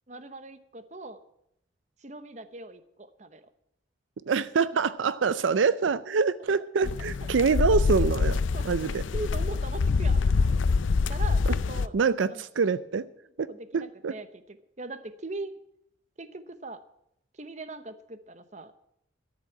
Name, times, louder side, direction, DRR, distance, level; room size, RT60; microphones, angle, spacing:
voice 1, 0.1-1.2 2.0-3.5 4.7-4.9 7.0-7.1 8.5-10.6 11.1-12.0 12.3-13.0 13.5-15.5 16.2-16.8 17.3-18.7, right 2 dB, 40° right, 11 dB, 0.9 m, -41 dB
voice 2, 4.3-8.4 8.6-9.0 11.9-13.1 13.4-14.1, right 5 dB, 85° right, 16 dB, 0.5 m, -25 dB
sound 1, 6.8-11.9, left 4 dB, 85° left, 0.5 m, -25 dB
13.5 x 7.5 x 8.5 m, 0.77 s
head